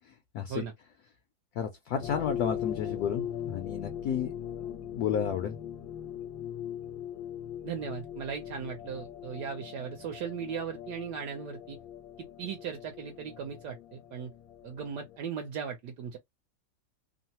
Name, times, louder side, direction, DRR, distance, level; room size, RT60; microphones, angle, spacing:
voice 1, 1.6-5.6, left 8 dB, 70° left, 0.9 m, -32 dB
sound 1, 2.0-15.2, left 10 dB, 85° left, 1.3 m, -40 dB
voice 2, 7.6-11.8 12.2-14.3 14.6-16.2, right 7 dB, 75° right, 1.1 m, -38 dB
3.1 x 2.0 x 2.7 m
omnidirectional pair, 2.0 m